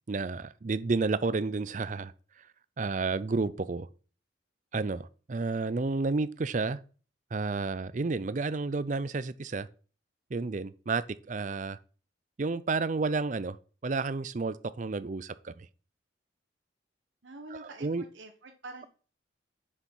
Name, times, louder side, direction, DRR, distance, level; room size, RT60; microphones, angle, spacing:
voice 1, 0.1-2.1 2.8-3.9 4.7-6.8 7.3-9.7 10.3-11.8 12.4-13.6 13.8-15.7 17.6-18.0, right 3 dB, 40° right, 0.5 m, -31 dB
voice 2, 17.2-18.9, right 2 dB, 80° right, 1.2 m, -46 dB
7.2 x 6.7 x 5.4 m
head